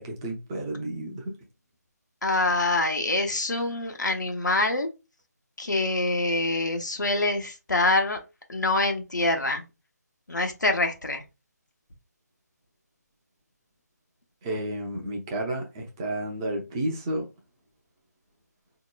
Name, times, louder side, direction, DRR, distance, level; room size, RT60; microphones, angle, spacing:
voice 1, 0.0-1.4 14.4-17.3, right 1 dB, 15° right, 0.6 m, -31 dB
voice 2, 2.2-4.9 5.6-8.2 8.5-9.6 10.3-11.2, left 2 dB, 85° left, 0.9 m, -25 dB
3.9 x 2.8 x 2.2 m
figure-of-eight pair, 160°, 10 cm